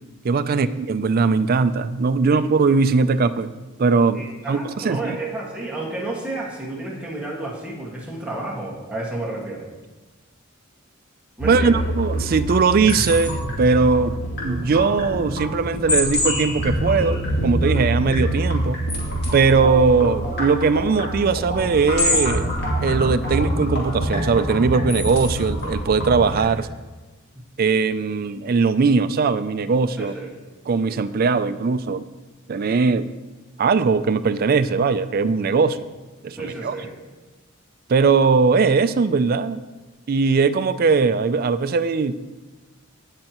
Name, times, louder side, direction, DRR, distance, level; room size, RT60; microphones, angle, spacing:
voice 1, 0.2-3.5 3.8-5.2 11.4-14.1 14.4-18.8 19.3-22.5 22.8-26.7 27.6-30.1 30.7-32.0 32.5-33.1 33.6-35.8 36.2-36.7 37.9-39.6 40.1-42.2, right 4 dB, 45° right, 12 dB, 0.4 m, -20 dB
voice 2, 4.1-9.7 11.4-11.8 30.0-30.3 36.4-36.9, right 2 dB, 5° right, -5 dB, 1.7 m, -31 dB
sound 1, 11.4-26.4, equal, 50° left, 2.7 m, -25 dB
16.5 x 6.5 x 3.0 m, 1.2 s
head